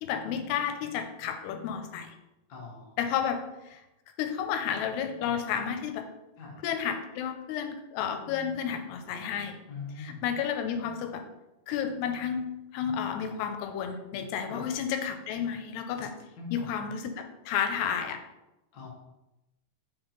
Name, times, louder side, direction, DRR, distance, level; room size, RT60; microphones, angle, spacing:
voice 1, 0.0-2.2 3.0-3.8 4.2-6.1 6.6-9.6 10.0-11.2 11.7-16.1 16.5-18.2, left 8 dB, 90° left, 7 dB, 2.7 m, -32 dB
voice 2, 2.5-3.0 6.4-6.6 9.7-10.2 14.5-14.7 16.4-16.6 18.7-18.9, left 5 dB, 65° left, -3 dB, 1.1 m, -41 dB
5.9 x 4.4 x 3.9 m, 0.96 s
omnidirectional pair, 4.7 m